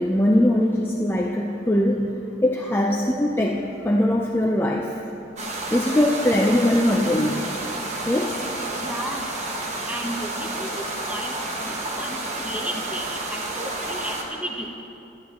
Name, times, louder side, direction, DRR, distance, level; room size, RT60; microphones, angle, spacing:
voice 1, 0.0-2.1 2.4-5.0 5.7-7.5 8.1-8.4, left 1 dB, 10° left, -1 dB, 0.5 m, -21 dB
sound 1, 5.4-14.2, right 2 dB, 35° right, 1.3 m, -30 dB
voice 2, 8.8-9.3 9.9-14.7, right 1 dB, 5° right, 1 dB, 0.9 m, -34 dB
21.5 x 11.5 x 3.0 m, 2.8 s
head